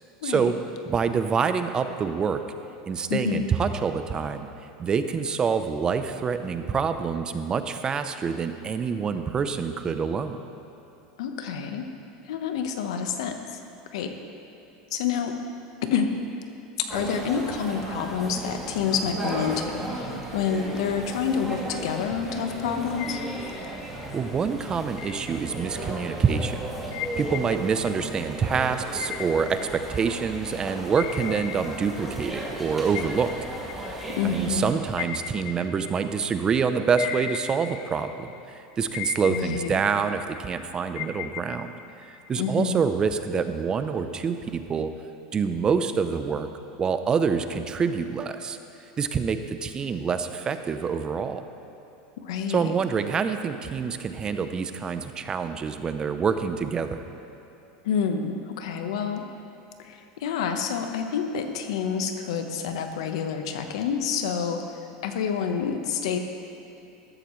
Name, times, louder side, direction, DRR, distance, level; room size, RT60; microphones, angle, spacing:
voice 1, 0.2-0.5 0.9-2.4 2.9-4.5 4.8-10.4 24.1-26.6 27.2-33.3 34.2-38.3 38.5-41.7 42.1-44.9 45.3-46.5 46.8-48.6 49.0-51.4 52.5-57.0, right 6 dB, 25° right, 9 dB, 0.7 m, -26 dB
voice 2, 3.1-3.5 11.2-11.8 12.2-13.6 13.9-14.1 14.9-15.4 15.9-16.1 16.9-23.2 34.1-34.7 39.3-39.8 42.4-42.8 52.2-52.6 57.8-59.2 59.8-64.6 65.0-66.2, left 6 dB, 80° left, 6 dB, 1.1 m, -28 dB
sound 1, 16.9-34.7, right 1 dB, 5° right, 2.9 m, -35 dB
sound 2, 23.0-24.3 25.0-26.1 26.9-30.5 31.0-32.6 32.9-36.5 37.0-38.5 38.9-40.5 40.9-42.6, left 10 dB, 60° left, 0.5 m, -38 dB
15.0 x 13.0 x 3.2 m, 3.0 s
supercardioid pair, 115°, 3 cm